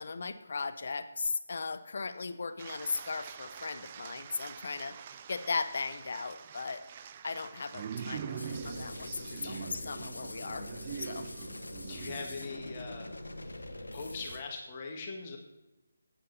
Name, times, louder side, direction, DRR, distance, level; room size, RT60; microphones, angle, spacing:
voice 1, 0.0-4.9 5.3-6.8 7.2-10.7 11.0-11.3, left 4 dB, 50° left, 11 dB, 0.8 m, -37 dB
sound 1, 2.6-12.9 13.4-13.8, right 7 dB, 30° right, 0.4 m, -44 dB
sound 2, 8.4-14.4, left 1 dB, 70° left, 1.2 m, -43 dB
voice 2, 11.9-13.1 13.9-15.4, left 4 dB, 30° left, 1 dB, 1.6 m, -41 dB
15.5 x 8.9 x 2.7 m, 1.0 s
figure-of-eight pair, 150°, 0 cm